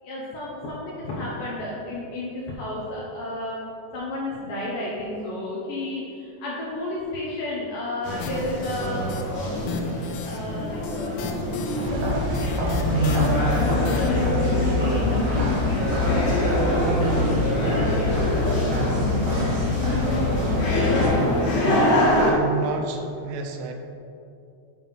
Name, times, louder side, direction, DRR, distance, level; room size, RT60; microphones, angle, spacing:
voice 1, 0.0-3.6 3.9-9.1 10.2-11.2 11.8-18.7 19.3-21.5, left 1 dB, 70° left, -6 dB, 2.2 m, -33 dB
sound 1, 8.0-22.3, left 1 dB, 50° left, 2.3 m, -26 dB
sound 2, 8.2-9.2 9.6-14.5, left 4 dB, 90° left, 2.0 m, -36 dB
sound 3, 11.8-21.1, left 2 dB, 60° right, 2.5 m, -24 dB
voice 2, 21.4-23.7, right 5 dB, 80° right, 4 dB, 2.6 m, -31 dB
9.2 x 3.5 x 5.5 m, 2.6 s
omnidirectional pair, 4.8 m